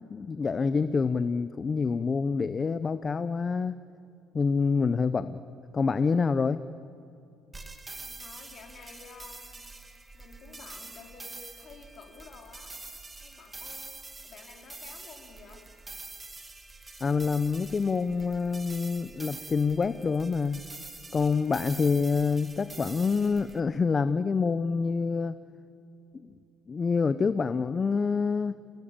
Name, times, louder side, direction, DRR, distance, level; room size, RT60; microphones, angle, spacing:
voice 1, 0.1-3.8 4.3-5.4 5.7-6.6 17.0-20.6 21.1-25.3 26.7-28.6, left 5 dB, 20° left, 13 dB, 0.6 m, -27 dB
sound 1, 7.5-23.6, right 3 dB, 10° right, 1.6 m, -45 dB
voice 2, 7.9-9.7 10.1-12.7 13.2-15.6, left 5 dB, 40° left, 3 dB, 3.9 m, -51 dB
29.0 x 18.0 x 8.8 m, 2.7 s
cardioid pair, 160°, 0 cm